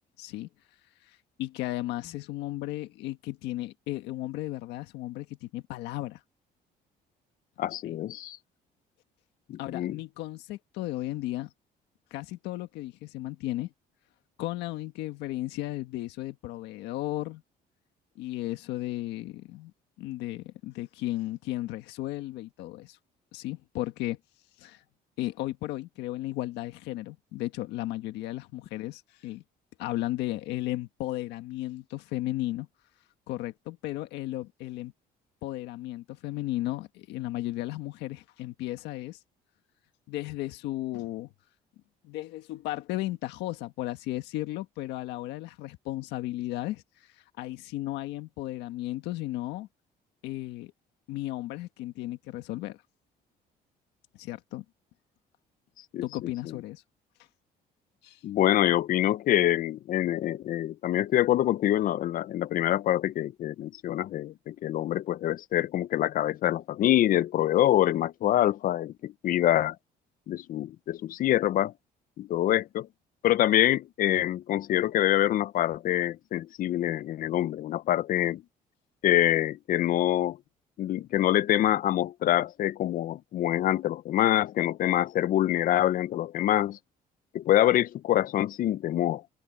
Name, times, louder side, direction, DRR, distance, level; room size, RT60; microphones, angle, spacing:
voice 1, 0.2-0.5 1.1-6.2 7.8-8.0 9.6-11.5 12.1-13.7 14.4-17.4 18.1-19.7 20.0-23.0 23.3-24.2 24.6-24.8 25.2-29.4 29.8-32.7 33.3-34.9 35.4-39.2 40.1-41.3 42.0-46.8 47.4-49.7 50.2-50.7 51.1-52.8 54.1-54.6 56.0-56.8 58.0-58.2, left 16 dB, 90° left, 1.5 m, -35 dB
voice 2, 7.6-8.4 9.5-10.0 55.9-56.0 58.2-69.8 70.3-71.7 72.2-72.9 73.2-78.4 79.0-80.4 80.8-86.8 87.3-89.2, left 13 dB, 55° left, 0.6 m, -25 dB
cardioid pair, 110°, 17 cm